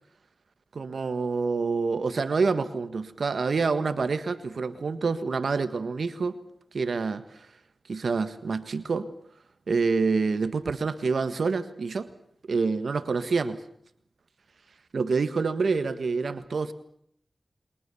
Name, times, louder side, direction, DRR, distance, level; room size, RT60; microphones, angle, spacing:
voice 1, 0.7-6.4 6.7-7.5 7.9-9.1 9.7-12.1 12.5-13.6 14.9-16.7, right 4 dB, 85° right, 11 dB, 1.6 m, -27 dB
29.5 x 23.0 x 7.1 m, 0.68 s
wide cardioid pair, 60°, 0 cm